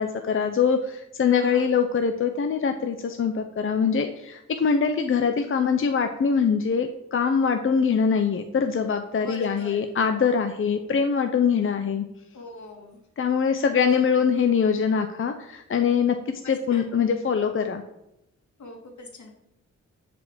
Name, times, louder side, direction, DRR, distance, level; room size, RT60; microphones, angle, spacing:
voice 1, 0.0-12.1 13.2-17.8, left 6 dB, 45° left, 7 dB, 0.7 m, -23 dB
voice 2, 1.3-1.7 9.2-9.8 12.3-13.0 13.8-14.0 16.4-16.9 18.6-19.4, left 2 dB, 75° left, 1 dB, 2.7 m, -41 dB
11.0 x 5.2 x 7.5 m, 0.85 s
wide cardioid pair, 130°, 29 cm